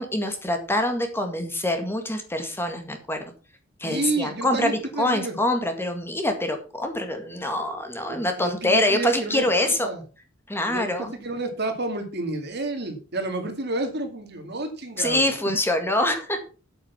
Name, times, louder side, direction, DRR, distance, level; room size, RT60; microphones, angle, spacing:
voice 1, 0.0-3.2 3.8-9.9 10.5-11.1 15.0-16.5, left 1 dB, 10° left, 6 dB, 1.9 m, -25 dB
voice 2, 3.8-5.3 8.1-10.0 10.7-15.3, right 2 dB, 55° right, 6 dB, 2.4 m, -30 dB
8.5 x 8.5 x 5.7 m, 0.35 s
head